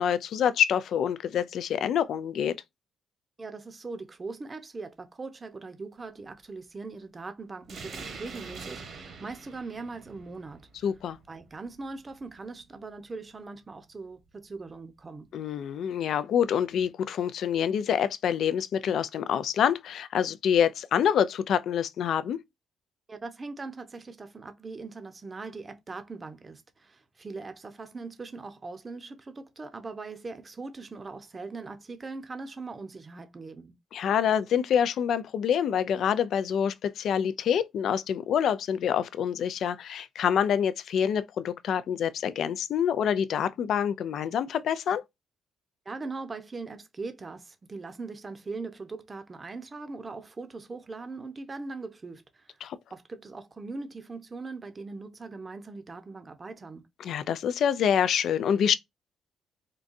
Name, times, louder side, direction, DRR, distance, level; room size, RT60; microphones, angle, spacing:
voice 1, 0.0-2.5 10.8-11.2 15.3-22.4 33.9-45.0 52.6-52.8 57.0-58.8, left 8 dB, 70° left, 0.3 m, -26 dB
voice 2, 3.4-10.7 11.3-15.3 23.1-33.8 45.9-52.6 52.9-56.9, right 3 dB, 30° right, 0.7 m, -40 dB
sound 1, 7.6-12.8, right 4 dB, 60° right, 1.1 m, -45 dB
3.8 x 2.3 x 2.5 m
cardioid pair, 90°, 0 cm